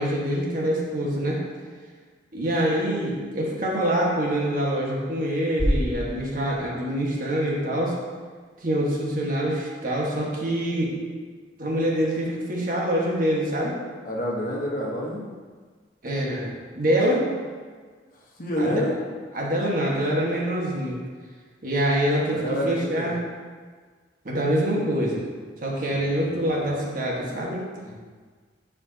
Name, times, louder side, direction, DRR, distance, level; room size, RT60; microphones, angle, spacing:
voice 1, 0.0-1.4 2.3-8.0 8.6-11.0 11.6-13.8 16.0-17.2 18.6-18.8 19.3-21.0 21.6-23.2 24.2-25.2 25.6-27.7, right 1 dB, 50° right, -3 dB, 1.5 m, -25 dB
sound 1, 5.6-7.7, equal, 5° right, 0.9 m, -29 dB
voice 2, 14.0-15.2 18.1-18.9 22.3-23.1 25.9-26.6 27.8-27.9, equal, 50° left, -3 dB, 1.2 m, -29 dB
10.5 x 4.9 x 2.9 m, 1.6 s
head